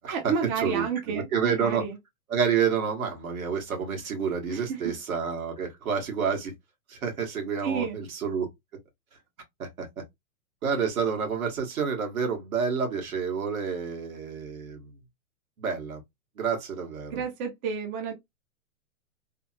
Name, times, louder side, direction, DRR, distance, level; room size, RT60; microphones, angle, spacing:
voice 1, 0.1-2.0 4.5-4.9 7.6-8.0 17.1-18.1, right 6 dB, 20° right, 0.5 m, -30 dB
voice 2, 0.6-1.8 2.3-6.5 6.9-8.5 9.6-9.9 10.6-14.9 15.6-16.0 16.4-17.2, right 6 dB, 75° right, 1.5 m, -29 dB
3.2 x 2.0 x 2.8 m
hypercardioid pair, 135°, 42 cm